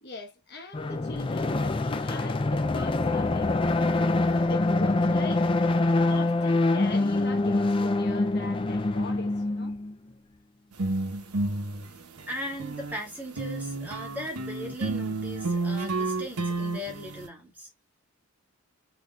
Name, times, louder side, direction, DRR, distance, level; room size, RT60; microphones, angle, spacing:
voice 1, 0.0-3.6 4.3-5.5 6.0-9.8, left 2 dB, 45° left, 1.1 m, -41 dB
Hoellische Harmonics Part II, 0.7-9.9, left 2 dB, 20° left, 0.4 m, -25 dB
sound 1, 10.7-13.0 13.4-17.3, right 3 dB, 90° right, 1.0 m, -31 dB
voice 2, 11.8-17.7, equal, 10° right, 2.0 m, -38 dB
4.3 x 4.2 x 2.3 m
head